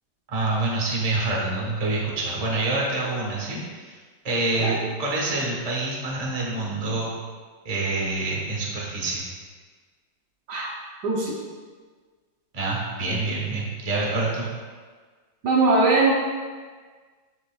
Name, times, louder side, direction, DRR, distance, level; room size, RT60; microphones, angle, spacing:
voice 1, 0.3-4.0 4.2-7.1 7.6-9.3 12.5-14.5, right 2 dB, 25° right, -3 dB, 1.0 m, -26 dB
voice 2, 11.0-11.4 15.4-16.1, right 3 dB, 65° right, -2 dB, 1.2 m, -21 dB
9.8 x 5.3 x 2.3 m, 1.5 s
omnidirectional pair, 2.1 m